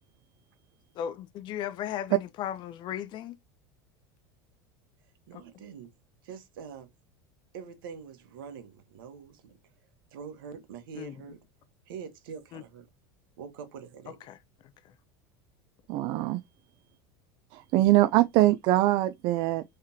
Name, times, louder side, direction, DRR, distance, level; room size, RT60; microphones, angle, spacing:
voice 1, 1.0-3.4 5.3-5.4 10.9-11.2 12.5-12.6 14.1-14.4 14.8-14.9, left 10 dB, 45° left, 0.5 m, -36 dB
voice 2, 5.3-5.9 6.2-6.9 7.5-9.6 10.1-11.4 11.9-12.8 13.4-14.2, right 6 dB, 85° right, 1.2 m, -44 dB
voice 3, 15.9-16.4 17.5-19.6, right 16 dB, 55° right, 0.4 m, -23 dB
3.6 x 3.3 x 2.7 m
supercardioid pair, 115°, 11 cm